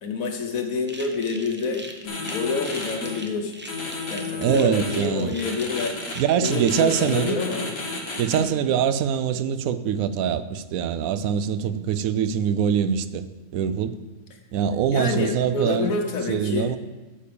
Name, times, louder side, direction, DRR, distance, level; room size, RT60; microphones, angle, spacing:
voice 1, 0.0-3.5 4.1-5.9 6.4-7.7 8.3-8.5 11.6-11.9 14.3-14.4 14.9-16.8, left 4 dB, 80° left, 4 dB, 1.5 m, -28 dB
sound 1, 0.8-7.2, right 1 dB, 15° right, 0.5 m, -42 dB
sound 2, 2.0-3.1 3.7-5.0 5.4-6.1 6.4-8.4, left 3 dB, 65° left, 1.9 m, -32 dB
voice 2, 4.4-5.3 6.2-7.4 8.2-13.2 13.5-14.0 14.5-15.9 16.3-16.8, right 8 dB, 90° right, 12 dB, 1.0 m, -23 dB
8.8 x 5.1 x 6.9 m, 1.2 s
omnidirectional pair, 1.4 m